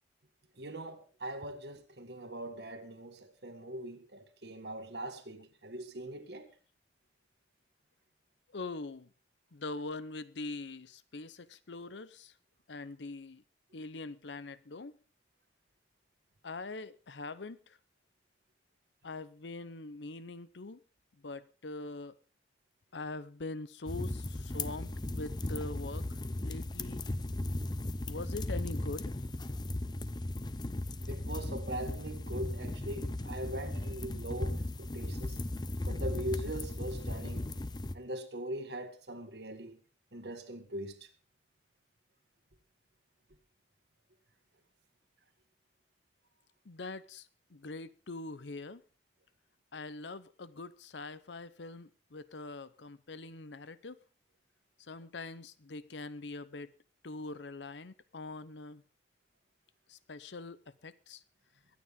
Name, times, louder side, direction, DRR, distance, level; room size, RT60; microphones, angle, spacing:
voice 1, 0.6-6.5 31.1-35.4 35.9-37.5 37.9-39.8 40.1-41.1, right 1 dB, 70° right, 1.9 m, -41 dB
voice 2, 8.5-9.1 9.5-12.3 12.7-13.4 13.7-14.9 16.4-17.8 19.0-20.8 21.2-22.2 22.9-26.0 26.4-27.0 28.1-29.2 46.6-48.8 49.7-54.0 54.8-56.7 57.0-58.8 59.9-61.2, left 3 dB, 90° left, 0.8 m, -43 dB
sound 1, 23.9-38.0, left 1 dB, 25° left, 0.7 m, -37 dB
23.0 x 9.4 x 3.8 m
head